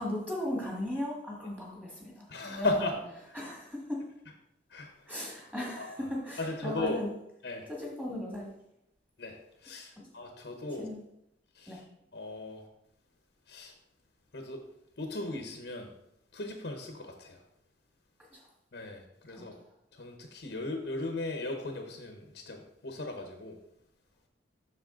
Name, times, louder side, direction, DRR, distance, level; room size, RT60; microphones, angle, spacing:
voice 1, 0.0-2.9 3.3-4.0 5.1-7.1 7.7-8.5 10.0-10.1 10.7-11.0 11.7-11.8 18.3-18.5 19.3-19.4, left 1 dB, 10° right, -2 dB, 1.8 m, -37 dB
voice 2, 2.3-3.0 4.7-4.9 5.8-5.9 6.4-7.0 7.4-7.7 9.2-10.9 11.5-11.8 12.1-12.7 13.5-13.7 14.3-14.6 15.0-15.9 16.3-17.4 18.7-19.5 19.9-23.6, left 2 dB, 65° left, 3 dB, 0.9 m, -36 dB
7.4 x 6.4 x 3.8 m, 0.82 s
head